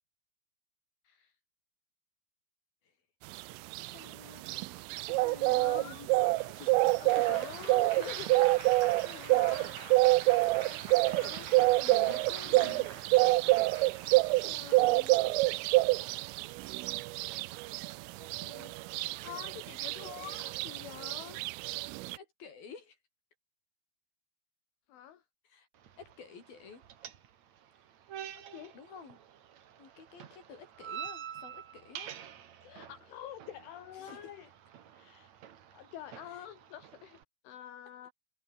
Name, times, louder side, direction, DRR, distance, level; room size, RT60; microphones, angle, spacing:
sound 1, 3.3-22.2, right 22 dB, 85° right, 3.2 m, -27 dB
voice 1, 3.8-4.7 5.1-6.1 6.5-7.0 11.4-11.5 12.3-13.0 13.8-13.9 14.2-14.5 14.8-15.5 22.1-23.0 25.4-25.7 26.0-26.8 28.7-29.2 29.8-32.2 33.9-34.3 36.3-36.5, left 5 dB, 45° left, 7.2 m, -52 dB
voice 2, 5.5-6.4 7.0-8.5 9.0-10.3 10.6-12.8 14.3-14.9 16.4-16.8 18.2-18.7 19.0-21.4 24.9-25.2 28.5-28.7 32.6-34.5 34.9-35.3 35.7-37.2 37.4-38.1, left 11 dB, 70° left, 4.7 m, -47 dB
Applause, 6.4-15.2 16.1-16.5, right 5 dB, 40° right, 6.0 m, -47 dB
sound 2, 25.7-37.2, right 9 dB, 60° right, 1.9 m, -48 dB
omnidirectional pair, 5.9 m